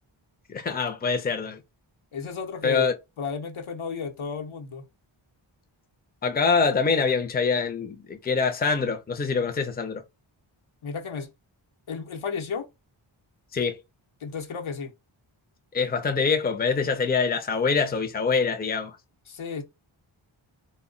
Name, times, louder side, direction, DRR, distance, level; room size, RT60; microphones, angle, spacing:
voice 1, 0.5-1.6 2.6-2.9 6.2-10.0 13.5-13.8 15.7-19.0, left 5 dB, 20° left, 0.5 m, -25 dB
voice 2, 2.1-2.9 3.2-4.8 10.8-11.3 11.9-12.7 14.2-14.9 19.3-19.6, left 5 dB, 75° left, 0.8 m, -33 dB
2.2 x 2.1 x 3.7 m
wide cardioid pair, 85°, 49 cm